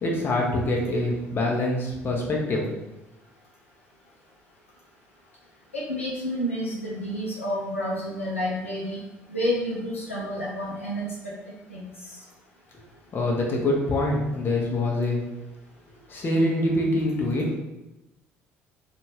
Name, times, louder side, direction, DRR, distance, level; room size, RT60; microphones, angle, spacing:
voice 1, 0.0-2.7 13.1-15.2 16.1-17.5, left 1 dB, 30° left, -2 dB, 0.8 m, -25 dB
voice 2, 5.7-9.0 9.3-11.0 11.7-11.8, equal, 85° left, -6 dB, 0.5 m, -29 dB
2.5 x 2.4 x 3.2 m, 0.98 s
figure-of-eight pair, 55°, 7 cm